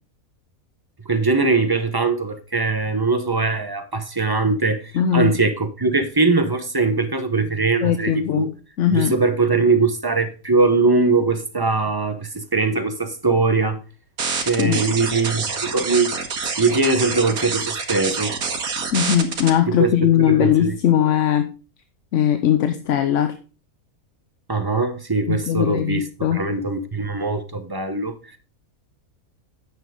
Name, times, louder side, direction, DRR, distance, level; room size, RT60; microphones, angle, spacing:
voice 1, 1.1-8.5 8.9-13.8 14.5-16.1 16.6-18.3 19.8-19.9 20.3-20.7 24.5-28.4, right 3 dB, 20° right, 0.8 m, -21 dB
voice 2, 4.9-5.3 7.8-9.1 14.6-14.9 18.9-21.5 22.1-23.3 25.3-26.4, left 10 dB, 60° left, 1.0 m, -19 dB
sound 1, 14.2-19.5, right 5 dB, 85° right, 1.9 m, -26 dB
9.6 x 7.1 x 3.7 m
omnidirectional pair, 1.5 m